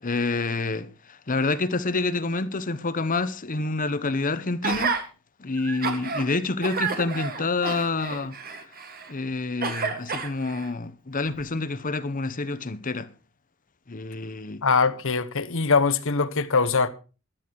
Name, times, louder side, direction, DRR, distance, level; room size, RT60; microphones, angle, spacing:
voice 1, 0.0-4.9 5.4-8.4 9.1-13.1 13.9-14.6, left 3 dB, 40° left, 1.0 m, -28 dB
Gasp, 4.6-5.0 5.6-6.2 6.6-9.1 9.6-10.7 11.3-11.4, right 5 dB, 45° right, 2.1 m, -30 dB
voice 2, 14.6-16.9, left 4 dB, 65° left, 1.1 m, -22 dB
13.5 x 12.0 x 4.7 m
head